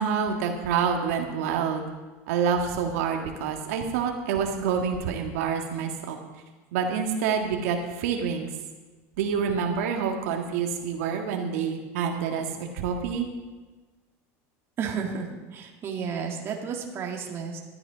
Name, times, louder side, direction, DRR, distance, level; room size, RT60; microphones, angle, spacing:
voice 1, 0.0-1.9 2.3-6.2 6.7-8.5 9.2-13.3, right 6 dB, 80° right, 2 dB, 1.8 m, -27 dB
voice 2, 14.8-17.6, right 6 dB, 35° right, 0 dB, 2.1 m, -32 dB
13.0 x 12.0 x 5.1 m, 1.3 s
supercardioid pair, 140°, 8 cm